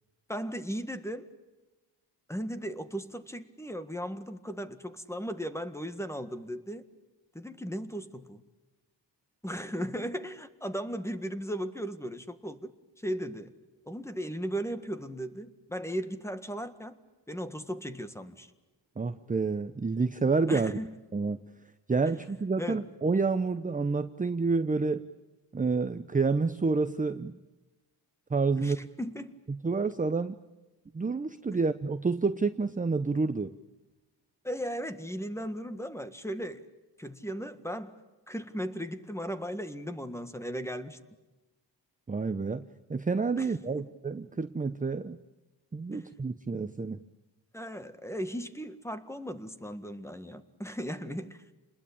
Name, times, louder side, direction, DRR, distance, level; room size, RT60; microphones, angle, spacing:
voice 1, 0.3-1.3 2.3-6.8 7.3-8.4 9.4-13.5 13.8-16.9 17.3-18.5 20.5-21.0 22.6-22.8 28.5-29.3 31.5-31.6 34.4-36.7 37.0-38.0 38.3-41.0 43.4-43.5 43.8-43.9 45.9-46.1 47.5-51.4, equal, 5° left, 10 dB, 1.7 m, -37 dB
voice 2, 19.0-20.8 21.1-21.4 21.9-25.1 25.5-27.4 28.3-28.8 29.6-30.4 30.9-33.5 42.1-42.6 42.9-45.2 45.7-47.0, right 4 dB, 20° right, 10 dB, 0.8 m, -29 dB
28.5 x 21.0 x 8.7 m, 1.1 s
cardioid pair, 95°, 45 cm